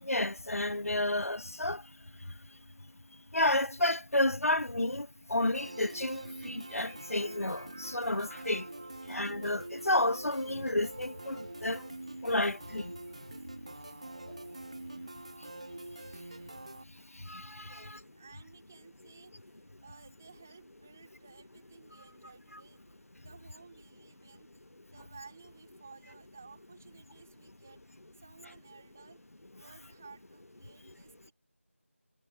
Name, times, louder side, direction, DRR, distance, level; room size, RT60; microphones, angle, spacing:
voice 1, 0.0-1.8 3.3-8.7 9.1-11.9 12.2-12.9 17.1-18.0 22.5-22.6, left 1 dB, 85° left, 1.1 m, -31 dB
sound 1, 5.5-16.8, right 2 dB, 25° right, 1.9 m, -45 dB
voice 2, 17.6-24.5 24.9-27.8 28.2-29.2 29.6-31.3, right 5 dB, 10° right, 4.2 m, -56 dB
figure-of-eight pair, 180°, 8 cm